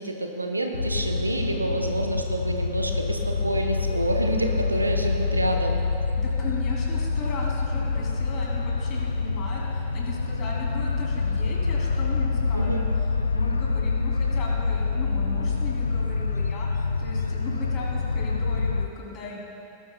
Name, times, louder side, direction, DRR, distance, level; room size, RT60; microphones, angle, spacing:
voice 1, 0.0-5.8 12.5-12.8, right 2 dB, 85° right, 4 dB, 0.9 m, -28 dB
sound 1, 0.7-18.9, left 4 dB, 80° left, 0.4 m, -26 dB
voice 2, 6.2-12.9 13.3-19.4, left 3 dB, 35° left, -2 dB, 2.8 m, -37 dB
19.0 x 12.0 x 2.2 m, 2.7 s
figure-of-eight pair, 90°, 0 cm